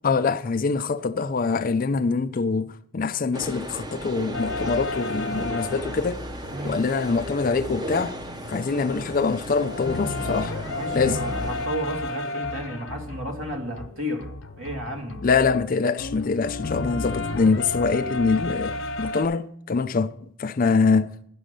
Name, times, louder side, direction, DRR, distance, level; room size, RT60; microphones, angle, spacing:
voice 1, 0.0-6.3 6.6-8.2 8.5-10.5 10.9-11.2 15.2-20.1 20.4-21.1, left 4 dB, 45° left, 0.4 m, -24 dB
sound 1, 3.3-11.7, right 1 dB, 20° right, 0.7 m, -36 dB
Jazz Improvisation, 4.3-6.8 7.1-8.5 8.9-19.3, left 2 dB, 65° left, 0.8 m, -33 dB
voice 2, 6.5-6.8 10.7-15.2, equal, 75° right, 2.1 m, -32 dB
10.0 x 6.3 x 6.5 m
head